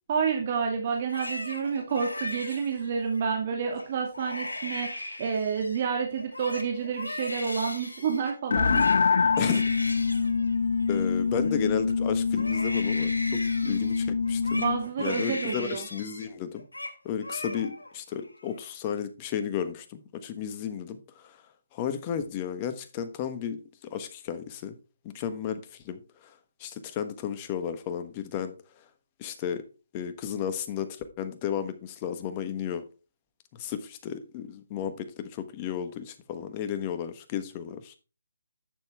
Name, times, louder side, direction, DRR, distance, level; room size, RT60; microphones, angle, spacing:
voice 1, 0.1-8.9 9.2-9.3 14.5-15.9, right 6 dB, 40° right, 2.1 m, -29 dB
Crying sobbing, 1.0-3.2 3.7-3.9 4.1-5.9 6.2-11.9 12.3-16.3 16.6-17.0 17.2-17.9 18.3-18.9, left 1 dB, 90° left, 3.3 m, -38 dB
sound 1, 8.5-14.9, left 5 dB, 65° left, 0.5 m, -25 dB
voice 2, 10.9-14.6 15.0-16.6 17.0-21.4 21.7-23.6 23.9-24.8 25.0-28.9 29.2-29.6 29.9-32.8 33.5-38.0, left 8 dB, 30° left, 1.3 m, -33 dB
10.5 x 7.1 x 3.5 m
figure-of-eight pair, 145°, 0 cm